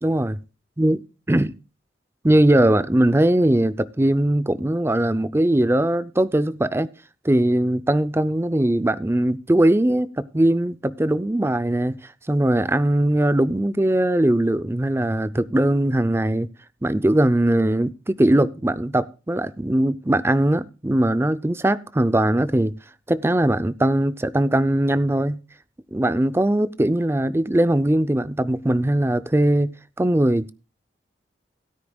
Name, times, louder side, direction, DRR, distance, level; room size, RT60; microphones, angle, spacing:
voice 1, 0.0-0.4 0.8-1.0 1.3-1.6 2.2-6.9 7.2-12.0 12.3-16.5 16.8-22.7 23.1-25.4 25.9-29.7 30.0-30.5, right 1 dB, 15° right, 0.5 m, -20 dB
16.5 x 9.7 x 2.3 m
head